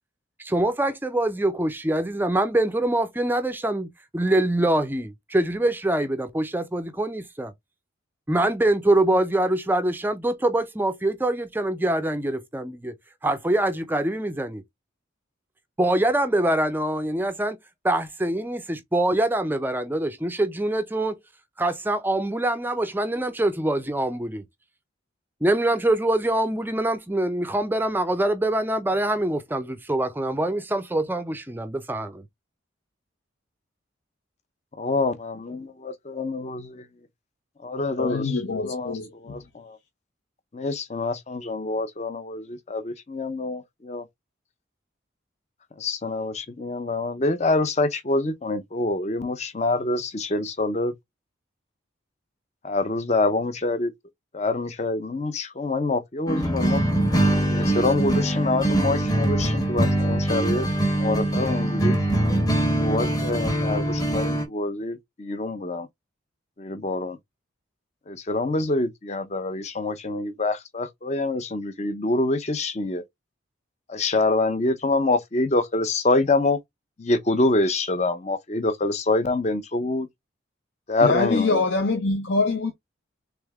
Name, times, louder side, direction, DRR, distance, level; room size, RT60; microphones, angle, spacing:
voice 1, 0.4-7.5 8.3-12.9 13.2-14.6 15.8-17.6 17.8-21.2 21.6-24.4 25.4-32.2, right 1 dB, 10° right, 0.4 m, -24 dB
voice 2, 34.8-35.6 36.2-36.8 37.6-38.2 38.5-39.8 40.5-44.1 45.8-50.9 52.6-53.9 54.3-56.8 57.5-60.7 61.0-62.0 62.8-65.9 66.6-67.2 68.1-73.0 73.9-76.6 77.0-80.1 80.9-81.6, left 2 dB, 35° left, 0.6 m, -26 dB
voice 3, 38.0-39.4 81.0-82.7, left 3 dB, 70° left, 0.7 m, -24 dB
sound 1, 56.3-64.5, right 1 dB, 20° left, 1.0 m, -23 dB
3.5 x 3.3 x 3.4 m
head